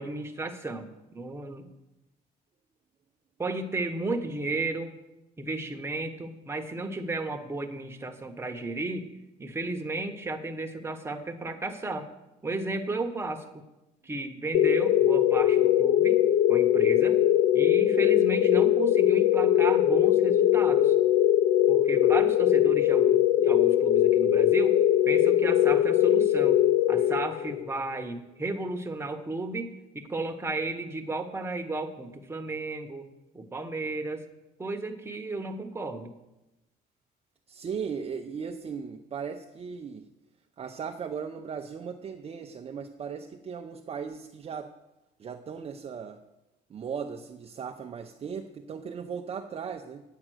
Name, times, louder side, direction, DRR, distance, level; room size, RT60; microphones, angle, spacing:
voice 1, 0.0-1.7 3.4-4.9 5.4-9.1 9.4-12.1 12.4-13.4 14.0-17.2 17.5-20.9 21.7-24.8 25.0-26.6 26.9-33.1 33.3-34.3 34.6-36.1, right 2 dB, 15° right, 4 dB, 1.2 m, -33 dB
sound 1, 14.5-27.7, left 11 dB, 60° left, 0.4 m, -21 dB
voice 2, 37.5-40.1 40.6-44.7 45.2-46.2 46.7-50.0, right 6 dB, 35° right, 3 dB, 0.6 m, -37 dB
9.0 x 8.7 x 6.4 m, 0.96 s
cardioid pair, 110°, 17 cm